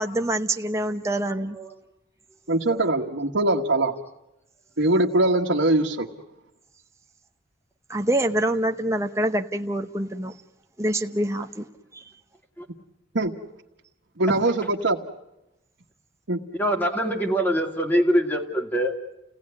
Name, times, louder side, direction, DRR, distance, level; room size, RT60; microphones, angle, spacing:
voice 1, 0.0-1.6 7.9-10.3 10.8-11.7 11.9-12.0 14.3-14.4, right 1 dB, 15° right, 5 dB, 0.9 m, -25 dB
voice 2, 2.5-3.9 4.8-6.1 13.1-13.3 14.2-15.0 16.3-16.4, right 2 dB, 90° right, -2 dB, 1.4 m, -22 dB
voice 3, 16.5-18.9, equal, 10° left, 3 dB, 2.4 m, -24 dB
30.0 x 18.0 x 9.6 m, 0.92 s
head